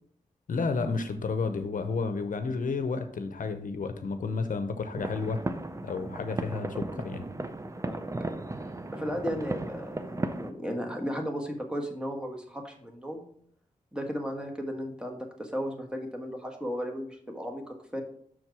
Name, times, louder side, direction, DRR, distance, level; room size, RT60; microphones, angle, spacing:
voice 1, 0.5-5.4 5.8-7.3, left 4 dB, 70° left, 8 dB, 0.7 m, -31 dB
sound 1, 5.0-10.5, right 2 dB, 20° right, 0.6 m, -35 dB
voice 2, 8.9-13.3 13.9-18.0, equal, 5° right, 2 dB, 1.4 m, -35 dB
6.2 x 4.4 x 4.7 m, 0.63 s
cardioid pair, 65°, 14 cm